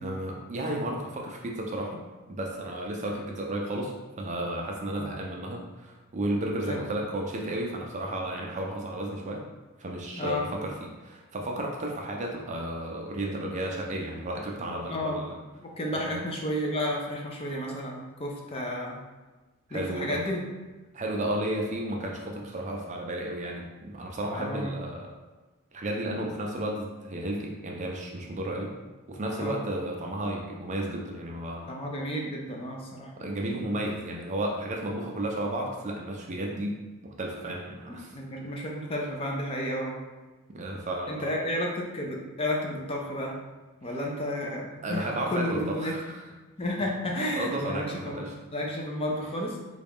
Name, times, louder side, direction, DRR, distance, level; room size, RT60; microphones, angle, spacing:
voice 1, 0.0-2.0 2.3-9.4 9.8-15.3 15.9-16.2 19.7-20.2 20.9-25.1 25.7-28.7 29.1-31.7 33.2-38.2 40.5-41.4 44.8-46.2 47.1-48.3, right 1 dB, 30° right, 0 dB, 0.4 m, -33 dB
voice 2, 14.9-15.2 15.6-19.0 19.7-20.5 24.3-24.7 29.4-29.6 31.7-33.1 37.9-40.0 41.1-43.4 43.8-46.0 46.6-49.6, left 1 dB, 25° left, -1 dB, 0.5 m, -32 dB
3.8 x 2.3 x 3.5 m, 1.2 s
head